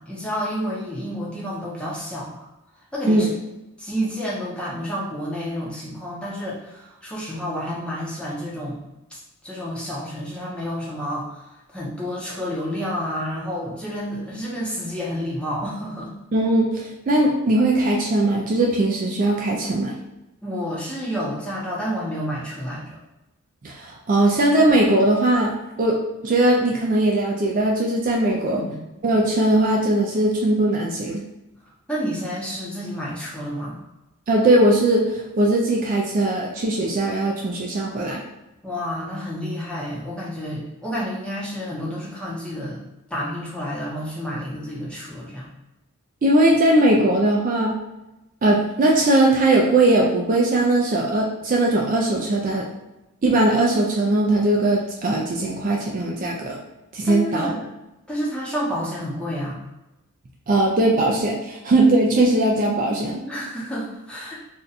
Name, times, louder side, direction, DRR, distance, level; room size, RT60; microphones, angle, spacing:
voice 1, 0.0-2.5 2.9-3.3 3.8-8.8 9.1-16.1 20.4-23.0 28.5-28.8 31.9-33.8 38.6-42.8 43.1-45.5 57.0-57.7 58.1-59.6 63.3-64.4, equal, 5° left, -6 dB, 0.7 m, -30 dB
voice 2, 16.3-19.9 23.6-25.5 25.8-26.0 26.2-28.6 29.0-31.2 34.3-38.2 46.2-47.8 48.4-52.6 53.2-56.6 56.9-57.5 60.5-63.2, right 1 dB, 35° right, -1 dB, 0.3 m, -19 dB
2.6 x 2.2 x 3.9 m, 0.97 s
head